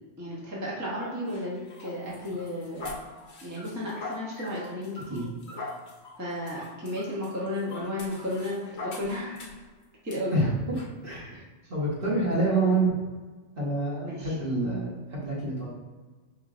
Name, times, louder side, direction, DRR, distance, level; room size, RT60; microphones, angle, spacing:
voice 1, 0.2-2.9 3.4-5.2 6.2-9.5 10.0-10.3 11.3-11.4 14.0-14.3, left 1 dB, 15° right, -7 dB, 0.8 m, -33 dB
sound 1, 1.0-9.7 10.1-10.2 10.7-10.9, left 2 dB, 65° left, 1.0 m, -42 dB
voice 2, 11.0-11.3 11.7-12.9 13.6-15.7, right 2 dB, 50° right, -7 dB, 1.4 m, -27 dB
5.2 x 3.2 x 2.5 m, 1.3 s
omnidirectional pair, 1.2 m